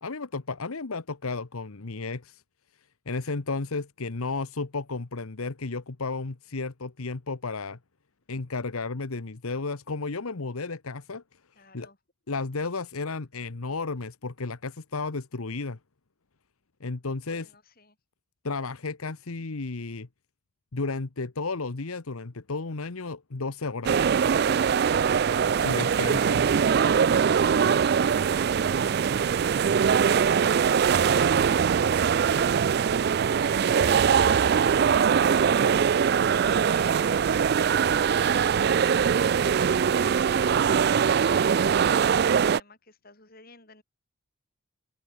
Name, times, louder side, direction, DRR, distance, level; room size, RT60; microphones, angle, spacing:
voice 1, 0.0-2.4 3.1-7.8 8.3-11.2 11.7-11.9 12.3-15.8 16.8-17.5 18.4-20.1 20.7-24.1 25.5-26.4, left 3 dB, 85° left, 1.1 m, -33 dB
voice 2, 11.6-12.0 17.3-18.0 25.5-26.6 27.0-29.5 29.8-32.5 33.3-34.9 35.2-39.0 39.7-43.8, left 3 dB, 45° left, 7.1 m, -52 dB
sound 1, 23.8-42.6, right 7 dB, 45° right, 0.3 m, -22 dB
open air
head